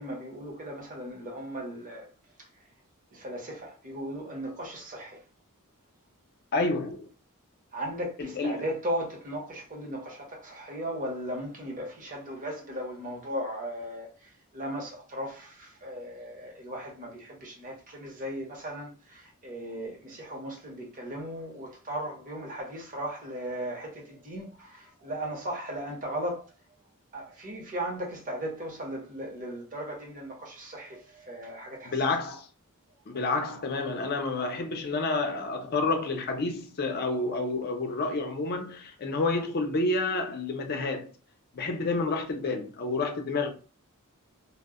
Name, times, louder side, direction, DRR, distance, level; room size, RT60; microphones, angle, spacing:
voice 1, 0.0-2.1 2.4-2.5 3.1-5.2 7.7-26.5 27.1-32.1, right 1 dB, 35° right, 0.8 m, -37 dB
voice 2, 6.5-7.1 8.2-8.6 31.8-32.5 33.1-41.1 41.5-43.5, left 3 dB, 45° left, 0.5 m, -29 dB
2.1 x 2.0 x 3.5 m
head